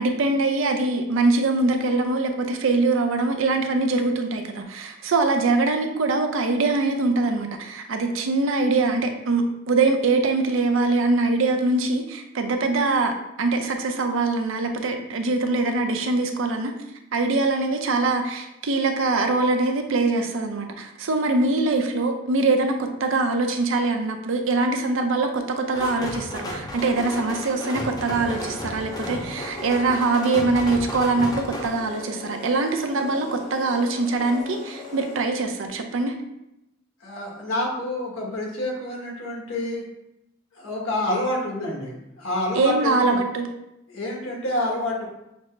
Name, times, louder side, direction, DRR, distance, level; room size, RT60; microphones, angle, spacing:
voice 1, 0.0-13.1 13.4-16.7 17.1-36.1 42.5-43.5, right 3 dB, 75° right, 5 dB, 0.5 m, -23 dB
sound 1, 25.7-31.7, equal, 20° left, 0.5 m, -33 dB
sound 2, 26.7-35.4, left 3 dB, 40° left, 0.9 m, -40 dB
voice 2, 37.0-39.8 40.5-43.2 43.9-45.1, left 1 dB, 80° left, -2 dB, 1.3 m, -28 dB
6.0 x 2.0 x 3.2 m, 0.88 s
head